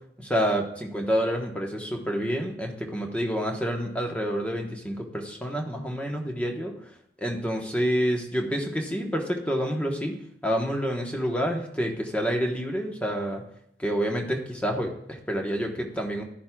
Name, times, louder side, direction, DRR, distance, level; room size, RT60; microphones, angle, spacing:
voice 1, 0.2-6.7 7.2-10.2 10.4-13.4 13.8-16.2, equal, 5° left, 2 dB, 1.1 m, -28 dB
12.0 x 10.5 x 2.3 m, 0.73 s
head